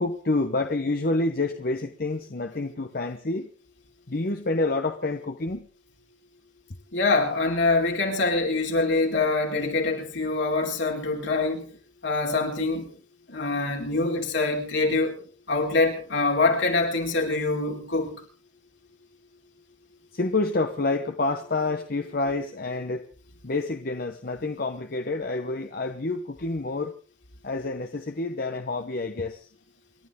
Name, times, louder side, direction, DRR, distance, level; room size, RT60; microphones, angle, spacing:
voice 1, 0.0-3.5 4.1-5.6 20.2-23.0 23.4-26.9 27.4-29.3, left 2 dB, 50° left, 1.0 m, -28 dB
voice 2, 6.9-11.7 12.0-12.9 13.3-15.2 15.5-18.1, left 3 dB, 70° left, 4.4 m, -24 dB
28.5 x 12.0 x 3.8 m
head